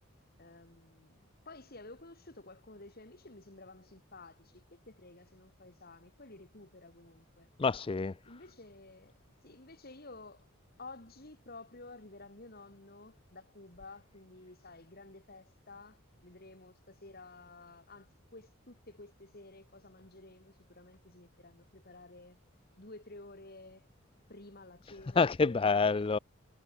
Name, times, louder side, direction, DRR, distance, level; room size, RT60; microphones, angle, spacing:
voice 1, 0.4-7.5 8.3-9.1 9.4-10.5 10.8-22.4 22.8-23.9 24.3-26.0, left 2 dB, 45° left, 2.9 m, -52 dB
voice 2, 7.6-8.1 24.9-26.2, left 4 dB, 25° left, 0.4 m, -28 dB
head